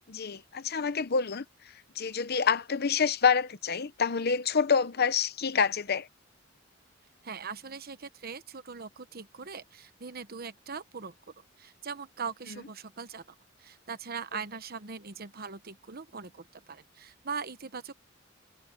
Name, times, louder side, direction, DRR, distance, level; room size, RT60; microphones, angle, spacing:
voice 1, 0.1-1.4 2.0-6.1, left 6 dB, 55° left, 0.9 m, -27 dB
voice 2, 7.2-11.1 11.6-13.2 13.6-17.9, right 5 dB, 50° right, 1.1 m, -40 dB
head